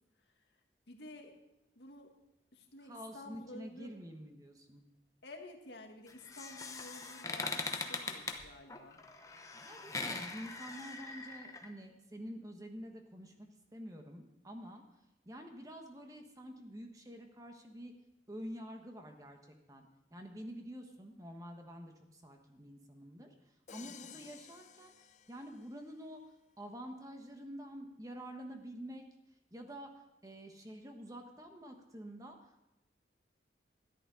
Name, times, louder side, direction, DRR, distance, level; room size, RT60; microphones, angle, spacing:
voice 1, 0.9-1.4 1.8-2.2 2.5-4.0 5.2-9.0 23.8-24.3, left 2 dB, 80° left, 3 dB, 1.9 m, -52 dB
voice 2, 2.8-4.8 9.6-14.8 15.2-17.9 18.3-23.3 23.7-24.9 25.3-26.2 26.6-29.0 29.5-29.9 30.2-32.4, equal, 20° right, 4 dB, 1.3 m, -48 dB
sound 1, 6.1-11.7, left 3 dB, 20° left, 0.8 m, -41 dB
Crash cymbal, 23.7-25.9, left 8 dB, 40° left, 0.4 m, -55 dB
13.0 x 11.0 x 4.9 m, 0.90 s
head